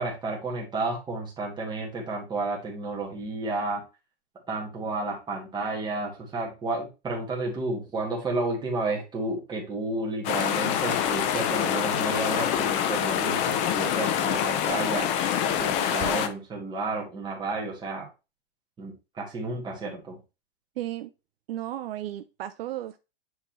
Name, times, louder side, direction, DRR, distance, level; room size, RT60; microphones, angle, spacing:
voice 1, 0.0-3.8 4.5-18.1 18.8-20.2, right 2 dB, 15° right, 2.0 m, -32 dB
sound 1, 10.2-16.3, left 9 dB, 20° left, 0.4 m, -26 dB
voice 2, 20.8-21.1 21.5-23.0, right 13 dB, 60° right, 0.6 m, -34 dB
9.6 x 3.7 x 3.1 m
supercardioid pair, 155°, 33 cm